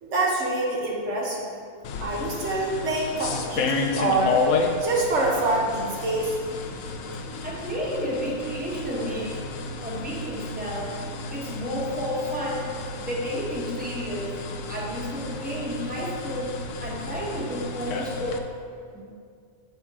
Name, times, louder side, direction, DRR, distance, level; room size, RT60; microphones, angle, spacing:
voice 1, 0.0-1.5 2.0-4.4 4.8-6.3, right 2 dB, 65° right, -2 dB, 1.3 m, -25 dB
sound 1, 1.8-18.4, left 4 dB, 80° left, 1.0 m, -32 dB
voice 2, 7.4-9.3 9.8-10.9 11.3-12.7 13.0-14.3 14.7-16.5 16.8-18.4 18.9-19.0, equal, 5° right, -5 dB, 1.2 m, -31 dB
8.1 x 4.4 x 4.7 m, 2.2 s
omnidirectional pair, 1.3 m